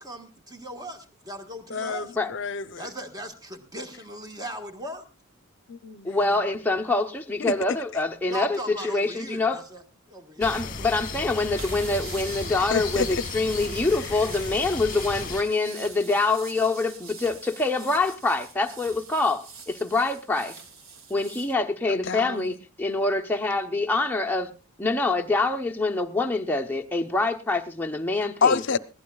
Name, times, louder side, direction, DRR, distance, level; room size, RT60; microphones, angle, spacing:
voice 1, 0.0-2.1 2.7-5.1 8.3-11.3, equal, 20° right, 1.4 m, -39 dB
voice 2, 1.7-2.8 5.7-6.4 7.4-7.5 12.7-13.1 21.9-22.5 28.4-28.8, left 5 dB, 55° left, 0.7 m, -27 dB
voice 3, 6.0-9.6 10.4-20.6 21.1-24.5 24.8-28.8, left 3 dB, 10° left, 0.8 m, -25 dB
sound 1, 10.4-15.4, left 4 dB, 40° left, 1.3 m, -35 dB
sound 2, 11.6-21.5, right 5 dB, 65° right, 1.8 m, -44 dB
20.5 x 16.0 x 2.3 m
head